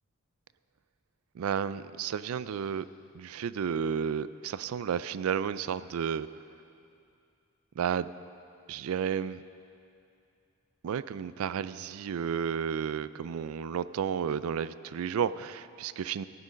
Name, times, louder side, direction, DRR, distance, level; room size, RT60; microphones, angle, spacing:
voice 1, 1.4-2.9 3.1-6.3 7.8-8.1 8.7-9.4 10.8-16.2, right 7 dB, 80° right, 16 dB, 0.3 m, -32 dB
15.0 x 9.7 x 5.1 m, 2.5 s
head